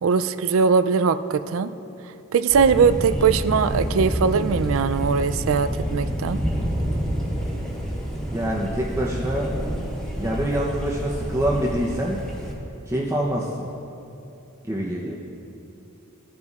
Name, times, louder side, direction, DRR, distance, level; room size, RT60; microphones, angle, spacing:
voice 1, 0.0-1.7 2.3-6.4, right 5 dB, 65° right, 12 dB, 0.4 m, -20 dB
Thunder, 2.5-12.5, equal, 5° left, 1.5 m, -28 dB
voice 2, 8.3-9.5 10.2-12.2 12.9-13.7 14.6-15.2, right 1 dB, 15° right, -4 dB, 0.7 m, -25 dB
16.5 x 9.3 x 2.4 m, 2.8 s
head